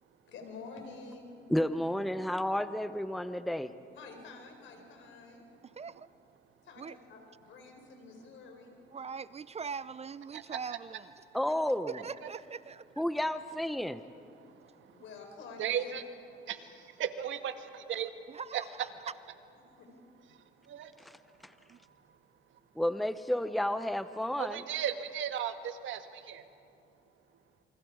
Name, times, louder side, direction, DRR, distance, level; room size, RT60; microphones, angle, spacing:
voice 1, 0.3-1.3 3.9-5.4 6.6-8.7 14.9-15.9 19.8-19.9, left 4 dB, 75° left, 3 dB, 4.6 m, -48 dB
voice 2, 1.5-3.7 11.3-12.0 13.0-14.0 21.4-21.5 22.8-24.6, left 1 dB, ahead, 11 dB, 0.8 m, -31 dB
voice 3, 5.6-6.1 6.8-7.0 8.9-11.1 11.9-12.8 18.3-19.1 21.7-21.8, right 6 dB, 30° right, 18 dB, 0.4 m, -42 dB
voice 4, 14.4-15.0 15.6-16.0 16.5-18.1 18.5-18.6 20.3-20.9 24.4-26.4, right 9 dB, 75° right, 9 dB, 1.4 m, -36 dB
28.5 x 25.0 x 4.8 m, 2.6 s
cardioid pair, 90°, 20 cm